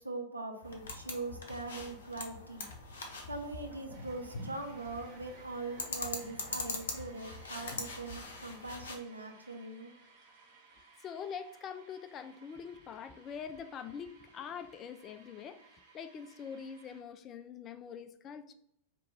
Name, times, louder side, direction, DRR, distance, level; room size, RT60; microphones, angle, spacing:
voice 1, 0.0-2.7 3.3-9.9, right 3 dB, 80° right, 0.7 m, -42 dB
sound 1, 0.6-9.0, left 3 dB, 65° left, 0.8 m, -43 dB
sound 2, 3.2-17.0, right 4 dB, 45° right, 1.6 m, -60 dB
voice 2, 10.7-18.5, left 7 dB, 30° left, 0.4 m, -44 dB
4.5 x 2.9 x 3.4 m
figure-of-eight pair, 90°, 0 cm